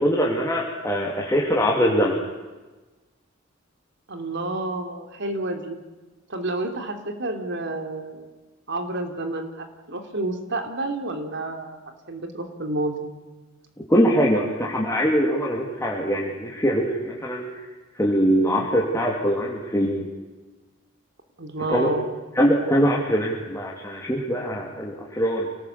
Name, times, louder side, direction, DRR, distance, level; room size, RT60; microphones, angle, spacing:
voice 1, 0.0-2.2 13.9-17.5 18.0-20.1 21.7-21.9 22.3-25.5, equal, 15° left, -3 dB, 3.1 m, -22 dB
voice 2, 4.1-5.8 6.3-8.2 8.7-11.8 12.1-13.1 21.4-22.1, right 2 dB, 60° right, 6 dB, 3.3 m, -29 dB
28.5 x 19.0 x 8.5 m, 1.2 s
head